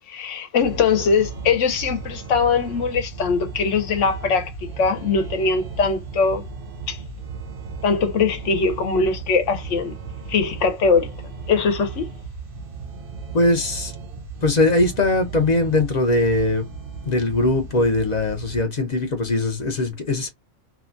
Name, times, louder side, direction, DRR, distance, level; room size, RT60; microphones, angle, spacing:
voice 1, 0.1-6.5 6.9-7.0 7.8-9.9 10.3-11.1 11.5-12.1, left 5 dB, 65° left, 1.0 m, -21 dB
sound 1, 0.6-18.6, right 4 dB, 50° right, 0.7 m, -36 dB
voice 2, 13.3-13.9 14.4-16.7 17.0-20.3, left 2 dB, 45° left, 0.5 m, -20 dB
2.8 x 2.2 x 2.4 m
omnidirectional pair, 1.4 m